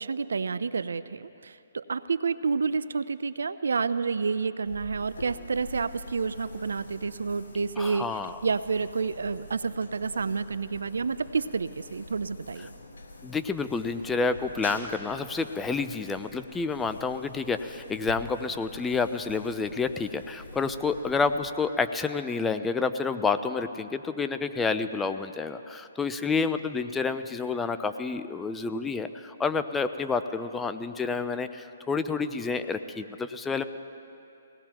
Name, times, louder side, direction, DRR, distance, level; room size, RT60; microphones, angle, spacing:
voice 1, 0.0-8.1 8.4-12.7, right 5 dB, 80° right, 15 dB, 0.5 m, -29 dB
sound 1, 4.7-22.0, left 2 dB, 80° left, 2.7 m, -46 dB
voice 2, 7.8-8.3 13.2-33.6, left 4 dB, 10° left, 10 dB, 0.5 m, -29 dB
22.5 x 18.0 x 3.0 m, 2.7 s
hypercardioid pair, 145°, 0 cm